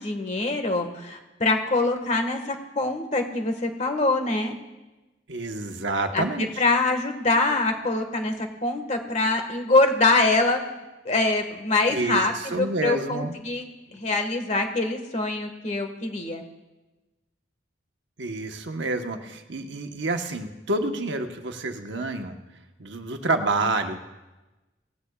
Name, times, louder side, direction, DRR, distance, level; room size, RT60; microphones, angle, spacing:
voice 1, 0.0-4.5 6.1-10.6 11.0-13.6 13.9-16.4, left 2 dB, 40° left, 5 dB, 1.6 m, -24 dB
voice 2, 5.3-6.5 11.9-13.3 18.2-22.4 22.8-24.0, right 2 dB, 75° right, 5 dB, 1.1 m, -28 dB
18.5 x 15.0 x 2.4 m, 1.1 s
head